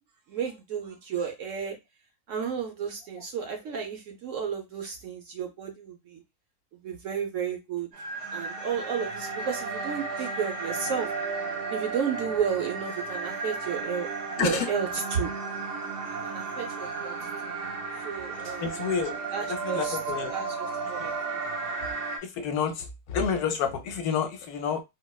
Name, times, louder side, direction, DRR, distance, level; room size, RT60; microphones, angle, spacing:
voice 1, 0.3-1.8 2.3-6.2 6.8-7.9 8.3-11.1 11.7-14.1 14.4-15.3 16.2-17.1 17.4-17.6 18.0-18.8 19.3-20.0 20.3-21.5, right 7 dB, 60° right, 0.9 m, -32 dB
sound 1, 7.9-22.2, right 4 dB, 90° right, 1.4 m, -34 dB
voice 2, 18.6-19.2 19.6-20.3 21.0-21.1 22.2-24.8, left 6 dB, 75° left, 1.1 m, -29 dB
4.2 x 2.0 x 2.2 m
omnidirectional pair, 1.7 m